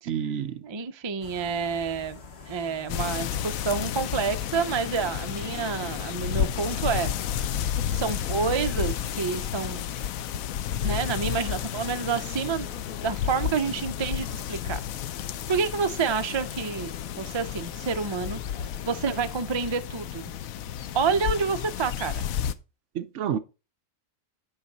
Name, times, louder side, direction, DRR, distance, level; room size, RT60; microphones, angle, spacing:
voice 1, 0.1-0.6 22.9-23.4, right 8 dB, 65° right, 0.9 m, -29 dB
voice 2, 0.6-2.2 2.5-7.1 7.9-9.8 10.8-12.8 13.0-14.8 15.5-18.4 18.9-20.3 20.9-22.3, right 5 dB, 40° right, 0.4 m, -28 dB
sound 1, 1.2-19.3, left 4 dB, 50° left, 1.4 m, -46 dB
sound 2, 2.9-22.5, left 9 dB, 85° left, 1.0 m, -32 dB
9.0 x 5.7 x 4.0 m
omnidirectional pair, 1.4 m